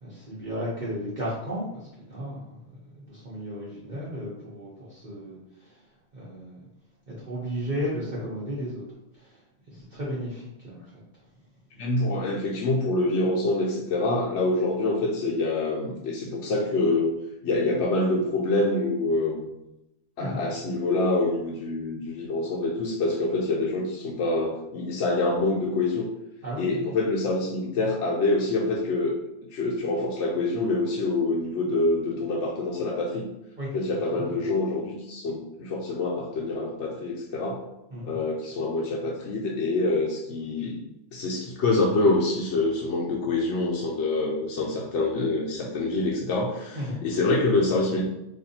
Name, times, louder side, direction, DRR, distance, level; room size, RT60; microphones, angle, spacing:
voice 1, 0.0-5.8 6.1-6.7 7.1-8.8 9.1-9.4 9.7-11.0 20.2-20.4 26.4-26.9 33.6-33.7 34.1-34.5 37.9-38.2 46.7-47.0, equal, 45° right, -8 dB, 1.0 m, -34 dB
voice 2, 11.8-17.1 17.4-19.5 20.2-26.1 26.6-29.1 29.5-33.3 33.7-37.6 38.0-40.8 41.1-48.0, left 2 dB, 75° left, -2 dB, 0.9 m, -26 dB
4.1 x 2.7 x 2.7 m, 0.88 s
omnidirectional pair, 1.2 m